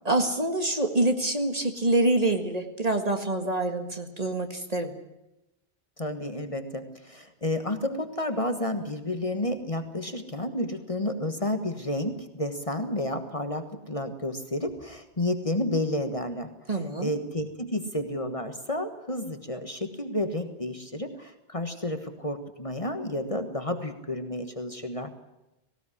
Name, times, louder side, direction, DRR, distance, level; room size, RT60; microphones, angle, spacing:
voice 1, 0.1-4.9 16.7-17.1, right 2 dB, 35° right, 6 dB, 1.9 m, -26 dB
voice 2, 6.0-16.5 17.0-25.1, left 1 dB, 30° left, 8 dB, 1.5 m, -31 dB
18.0 x 17.5 x 10.0 m, 0.95 s
omnidirectional pair, 1.1 m